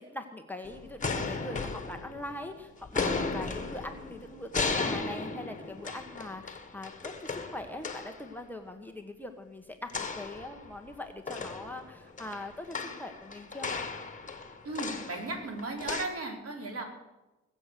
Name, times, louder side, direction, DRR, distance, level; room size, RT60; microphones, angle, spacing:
voice 1, 0.0-13.7, left 1 dB, 5° left, 7 dB, 1.2 m, -42 dB
sound 1, 0.6-2.5 2.8-8.2 9.9-10.9 11.3-16.0, left 4 dB, 25° left, 1.8 m, -35 dB
voice 2, 14.6-16.8, right 2 dB, 50° right, 2 dB, 4.1 m, -36 dB
21.0 x 7.8 x 6.8 m, 1.0 s
cardioid pair, 90°, 30 cm